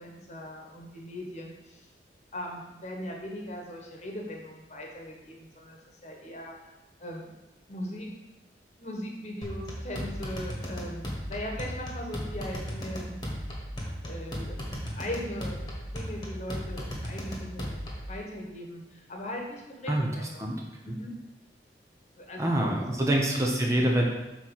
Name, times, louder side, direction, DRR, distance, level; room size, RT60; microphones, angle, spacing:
voice 1, 0.0-1.9 2.3-6.7 7.0-7.2 7.7-8.1 8.8-13.2 14.0-17.8 18.1-21.1 22.2-23.1, left 1 dB, 40° left, 0 dB, 1.2 m, -39 dB
sound 1, 9.4-18.1, equal, 25° left, 1.4 m, -36 dB
voice 2, 22.4-24.0, right 1 dB, 15° right, -1 dB, 0.8 m, -25 dB
6.0 x 4.4 x 6.3 m, 0.99 s
head